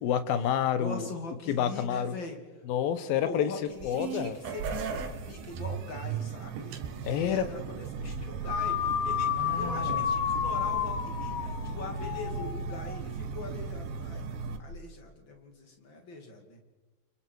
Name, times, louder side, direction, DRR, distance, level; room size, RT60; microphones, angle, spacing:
voice 1, 0.0-1.1 1.5-2.1 2.7-3.5 3.8-4.4 7.0-7.4 9.4-10.0, left 9 dB, 85° left, 12 dB, 2.9 m, -29 dB
voice 2, 0.7-2.4 3.2-6.7 7.1-9.3 9.5-14.2 14.6-16.6, left 3 dB, 35° left, 3 dB, 2.9 m, -42 dB
sound 1, 3.7-14.6, right 5 dB, 80° right, 3.2 m, -36 dB
sound 2, 8.4-13.0, left 9 dB, 60° left, 2.0 m, -31 dB
30.0 x 24.5 x 4.7 m, 1.3 s
omnidirectional pair, 4.1 m